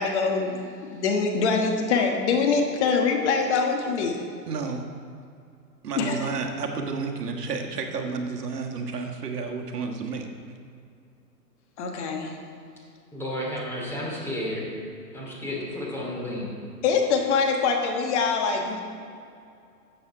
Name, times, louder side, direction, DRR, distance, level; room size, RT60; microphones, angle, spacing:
voice 1, 0.0-4.2 6.0-6.3 11.8-12.4 16.8-18.8, left 5 dB, 40° left, 2 dB, 1.4 m, -24 dB
voice 2, 4.5-4.8 5.8-10.3, right 4 dB, 65° right, 3 dB, 1.6 m, -31 dB
voice 3, 13.1-14.6 15.1-16.5, left 1 dB, 5° left, -5 dB, 2.6 m, -32 dB
13.0 x 7.9 x 4.8 m, 2.4 s
hypercardioid pair, 130°, 50 cm